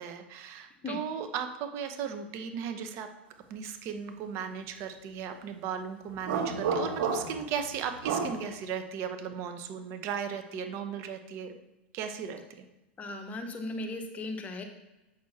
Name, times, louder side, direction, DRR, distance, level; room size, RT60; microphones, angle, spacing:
voice 1, 0.0-3.1 3.5-11.5 11.9-12.7, right 7 dB, 50° right, 7 dB, 1.1 m, -36 dB
sound 1, 6.2-7.5 8.0-8.4, right 5 dB, 65° right, 1.8 m, -30 dB
voice 2, 13.0-14.6, left 2 dB, 25° left, 5 dB, 1.3 m, -37 dB
7.9 x 6.5 x 4.2 m, 1.0 s
hypercardioid pair, 105°, 6 cm